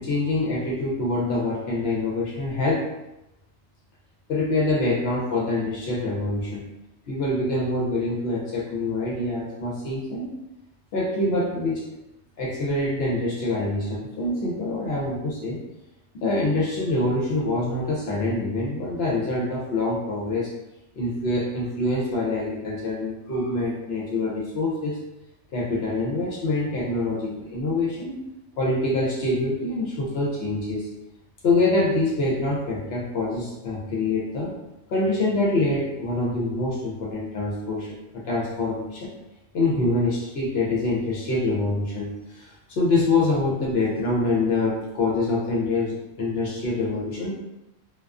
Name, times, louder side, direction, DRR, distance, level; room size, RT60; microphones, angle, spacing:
voice 1, 0.0-2.9 4.3-6.6 7.1-10.3 10.9-11.8 12.4-15.6 16.1-20.5 20.9-25.0 25.5-28.2 28.6-30.9 31.4-34.5 34.9-39.1 39.5-47.3, left 2 dB, 60° left, -4 dB, 0.7 m, -25 dB
2.3 x 2.3 x 2.3 m, 0.90 s
omnidirectional pair, 1.3 m